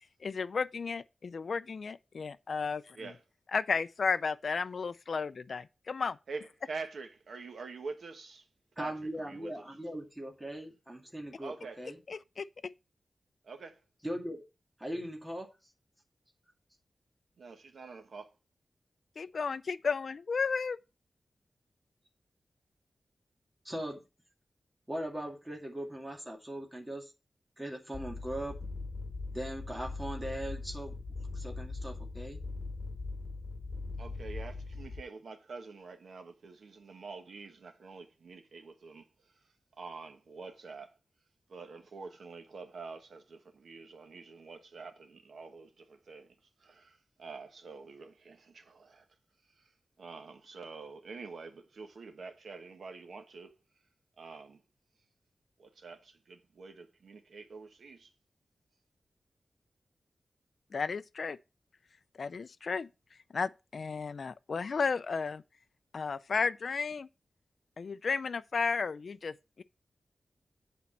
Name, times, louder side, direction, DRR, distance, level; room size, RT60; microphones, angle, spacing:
voice 1, 0.2-3.0 3.5-6.2 12.1-12.5 19.2-20.8 60.7-61.4 62.2-62.9 63.3-65.4 65.9-67.1 67.8-69.6, left 5 dB, 60° left, 0.4 m, -33 dB
voice 2, 6.3-8.5 8.8-9.6 11.4-11.8 13.4-13.8 17.4-18.3 34.0-39.1 39.8-40.9 41.5-46.3 46.6-49.0 49.6-49.7 50.0-53.5 54.2-54.6 55.6-58.1, right 4 dB, 80° right, 1.2 m, -46 dB
voice 3, 8.8-12.0 14.0-14.4 14.8-15.5 23.6-24.0 24.9-27.1 27.6-28.5 29.3-31.0 31.3-32.4, right 1 dB, 10° right, 2.3 m, -39 dB
sound 1, 27.9-35.0, left 3 dB, 35° left, 3.1 m, -40 dB
8.5 x 4.3 x 7.1 m
wide cardioid pair, 150°, 0 cm